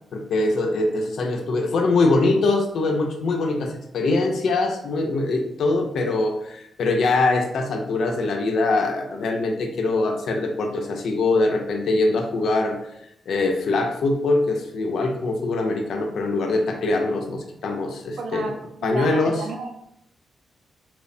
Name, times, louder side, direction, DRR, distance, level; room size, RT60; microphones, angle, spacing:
voice 1, 0.1-12.8 13.3-18.5 18.8-19.4, left 2 dB, 75° left, 3 dB, 0.4 m, -23 dB
voice 2, 18.2-19.7, right 4 dB, 80° right, 2 dB, 0.4 m, -33 dB
2.9 x 2.1 x 2.6 m, 0.78 s
cardioid pair, 115°, 0 cm